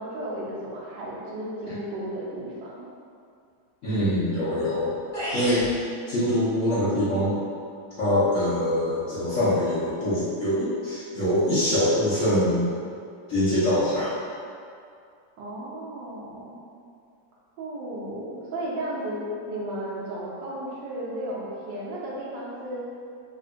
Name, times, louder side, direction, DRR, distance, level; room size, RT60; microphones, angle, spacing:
voice 1, 0.0-2.9 15.4-16.5 17.6-19.2 19.5-22.8, right 1 dB, 85° right, -5 dB, 1.3 m, -34 dB
voice 2, 3.8-4.9 5.3-7.4 8.0-12.7 13.3-14.1, left 1 dB, 55° left, -12 dB, 1.1 m, -24 dB
sound 1, 5.1-5.7, equal, ahead, 1.0 m, -30 dB
3.6 x 2.5 x 2.4 m, 2.4 s
omnidirectional pair, 1.9 m